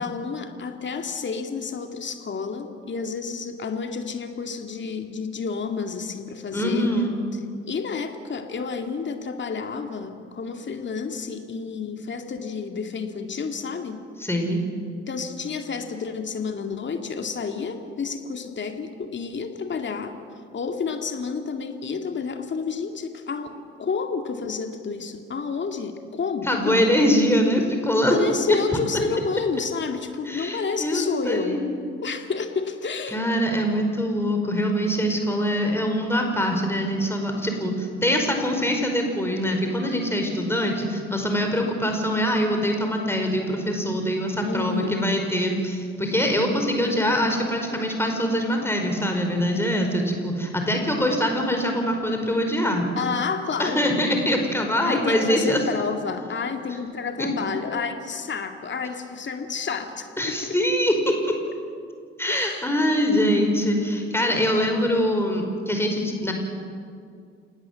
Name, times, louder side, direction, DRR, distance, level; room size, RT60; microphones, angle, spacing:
voice 1, 0.0-6.9 7.3-7.4 7.7-14.0 15.1-20.2 20.5-26.9 28.1-31.7 32.0-33.3 44.4-45.1 53.0-53.9 54.8-60.6 62.3-62.7, left 5 dB, 35° left, 6 dB, 2.3 m, -30 dB
voice 2, 6.5-7.1 14.2-14.6 26.4-28.2 30.2-31.7 33.1-52.9 53.6-55.6 57.2-57.3 60.2-61.1 62.2-66.3, equal, 5° left, 3 dB, 5.0 m, -23 dB
29.0 x 19.0 x 7.5 m, 2.3 s
figure-of-eight pair, 50°, 32 cm